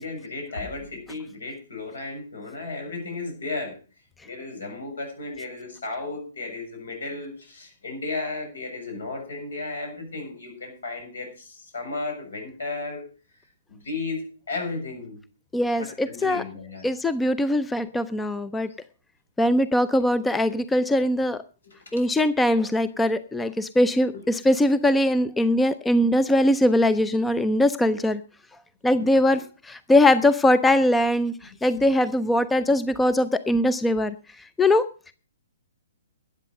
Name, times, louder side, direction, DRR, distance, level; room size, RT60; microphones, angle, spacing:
voice 1, 0.0-3.7 4.2-13.0 13.7-15.2 15.8-16.9 21.6-22.0 24.1-24.3 26.0-26.1 29.0-29.1, left 3 dB, 70° left, 3 dB, 7.4 m, -34 dB
voice 2, 15.5-16.4 16.8-18.7 19.4-21.4 21.9-28.2 28.8-34.9, left 1 dB, 5° left, 14 dB, 0.5 m, -21 dB
13.0 x 8.8 x 6.4 m, 0.38 s
figure-of-eight pair, 125°, 0 cm